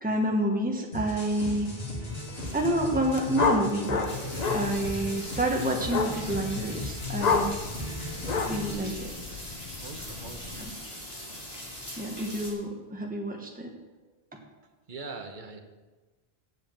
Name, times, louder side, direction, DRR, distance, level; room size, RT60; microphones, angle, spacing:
voice 1, 0.0-1.7 2.5-4.1 4.5-7.6 8.5-9.1 10.6-10.7 12.0-13.7 14.3-14.4, right 1 dB, 10° right, 1 dB, 1.2 m, -29 dB
sound 1, 0.9-8.7, left 1 dB, 70° left, 2.5 m, -36 dB
sound 2, 2.3-2.7 2.9-10.7, left 4 dB, 45° left, 0.8 m, -31 dB
sound 3, 4.0-12.5, left 1 dB, 30° left, 3.3 m, -41 dB
voice 2, 9.8-10.7 14.9-15.6, right 3 dB, 50° right, 4 dB, 1.2 m, -42 dB
8.1 x 7.0 x 7.7 m, 1.3 s
omnidirectional pair, 1.1 m